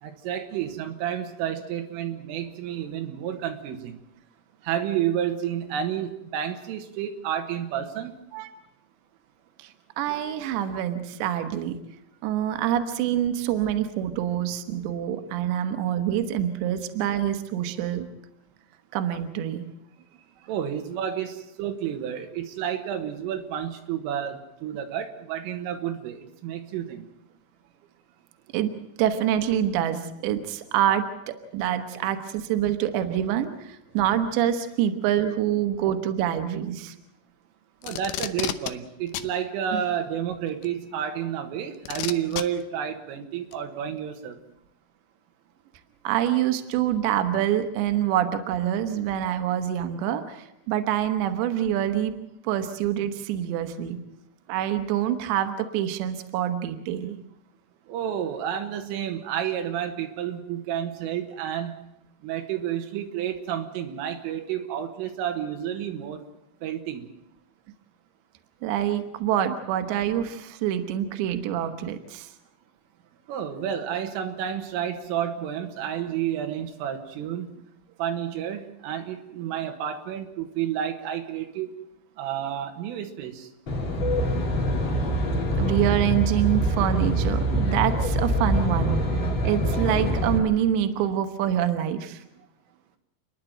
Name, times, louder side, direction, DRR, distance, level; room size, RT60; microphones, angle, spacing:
voice 1, 0.0-4.0 4.6-8.2 20.5-27.1 37.8-44.4 57.9-61.9 62.2-66.2 66.6-67.1 73.3-77.5 78.0-81.8 82.2-83.5, right 9 dB, 90° right, 5 dB, 4.1 m, -30 dB
voice 2, 10.0-11.8 12.2-18.1 18.9-19.7 28.5-36.9 39.7-39.8 46.0-52.2 52.4-54.0 54.5-57.2 68.6-72.3 85.6-89.0 89.4-92.2, right 10 dB, 70° right, 7 dB, 3.3 m, -26 dB
Packing tape duct tape, 37.8-38.7 39.1-39.3 40.6-40.7 41.9-42.4 43.5-43.6, left 13 dB, 80° left, 2.3 m, -30 dB
Aircraft, 83.7-90.4, equal, 30° left, 3.0 m, -25 dB
30.0 x 10.5 x 9.0 m, 0.83 s
omnidirectional pair, 5.7 m